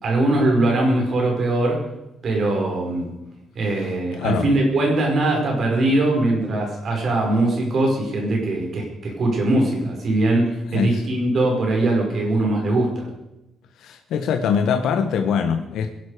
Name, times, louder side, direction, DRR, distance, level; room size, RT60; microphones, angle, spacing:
voice 1, 0.0-1.8 2.2-3.1 3.6-13.1, right 2 dB, 40° right, 0 dB, 5.4 m, -21 dB
voice 2, 4.2-4.5 10.7-11.0 13.8-15.9, left 6 dB, 80° left, 5 dB, 1.3 m, -23 dB
22.0 x 12.0 x 5.1 m, 0.93 s
cardioid pair, 170°, 0 cm